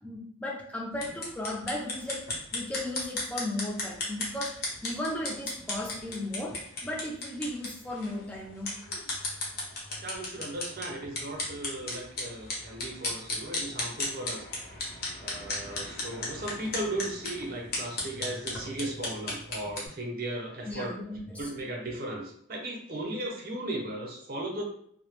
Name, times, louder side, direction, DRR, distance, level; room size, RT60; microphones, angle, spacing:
voice 1, 0.0-2.2 2.5-6.6 6.8-8.7 20.7-21.5, left 1 dB, 5° left, -2 dB, 0.4 m, -36 dB
sound 1, 0.9-19.9, left 2 dB, 50° left, 0.7 m, -36 dB
voice 2, 10.0-14.5 14.8-20.9 21.4-24.6, right 1 dB, 50° right, -1 dB, 0.6 m, -36 dB
2.2 x 2.0 x 3.0 m, 0.66 s
head